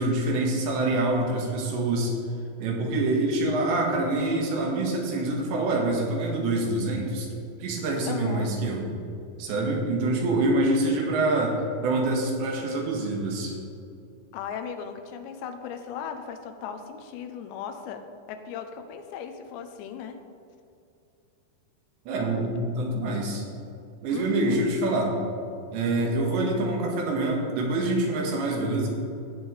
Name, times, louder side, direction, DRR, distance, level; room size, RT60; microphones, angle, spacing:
voice 1, 0.0-2.2 2.6-7.3 7.6-8.9 9.4-13.5 22.1-23.5 24.0-25.2 25.7-28.9, right 2 dB, 90° right, -1 dB, 3.8 m, -26 dB
voice 2, 8.1-8.5 14.3-18.0 18.3-20.2 24.1-24.7, left 7 dB, 85° left, 7 dB, 3.0 m, -37 dB
16.5 x 7.3 x 3.3 m, 2.6 s
omnidirectional pair, 5.0 m